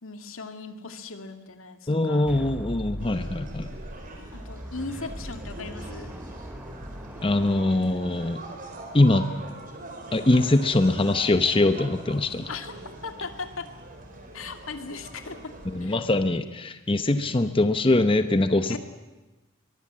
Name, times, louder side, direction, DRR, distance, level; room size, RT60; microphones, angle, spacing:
voice 1, 0.0-2.4 4.3-6.1 12.5-12.7 13.0-13.7 14.3-16.0 18.7-18.8, left 4 dB, 80° left, 7 dB, 2.2 m, -38 dB
voice 2, 1.9-3.7 7.2-8.4 8.9-9.3 10.1-12.5 15.7-18.8, left 2 dB, 25° left, 9 dB, 0.8 m, -22 dB
sound 1, 2.3-8.4, equal, 5° right, 0.8 m, -40 dB
sound 2, 3.0-16.0, right 2 dB, 40° right, 4.5 m, -43 dB
23.0 x 22.5 x 7.6 m, 1.1 s
head